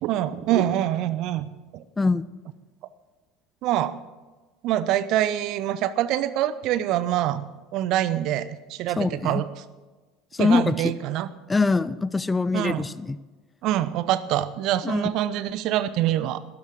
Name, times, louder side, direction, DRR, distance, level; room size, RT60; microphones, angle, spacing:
voice 1, 0.0-1.8 3.6-4.0 4.6-7.5 7.7-9.5 10.4-11.3 12.5-12.8 13.6-16.4, right 12 dB, 50° right, 14 dB, 0.7 m, -25 dB
voice 2, 2.0-2.3 9.0-9.4 10.3-10.9 11.5-13.2 14.8-15.1, left 3 dB, 15° left, 18 dB, 0.5 m, -23 dB
13.0 x 10.5 x 6.3 m, 1.2 s
figure-of-eight pair, 65°, 0 cm